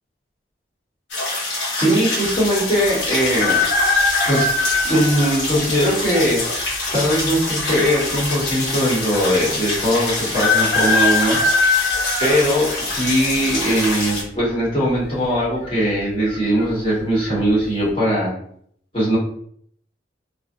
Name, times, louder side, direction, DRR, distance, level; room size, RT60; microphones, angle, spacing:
sound 1, 1.1-14.2, left 2 dB, 80° left, 1.0 m, -26 dB
voice 1, 1.7-3.6 4.2-4.5 4.8-11.4 12.2-18.3 18.9-19.2, equal, 30° left, -8 dB, 1.2 m, -20 dB
sound 2, 3.3-5.4 6.0-6.1 7.2-7.9 8.2-8.3 8.4-8.5 10.3-13.0 13.5-13.9 15.0-15.4 15.6-15.7 16.3-16.6 17.1-17.3, left 3 dB, 55° left, 0.6 m, -20 dB
2.6 x 2.3 x 2.5 m, 0.65 s
head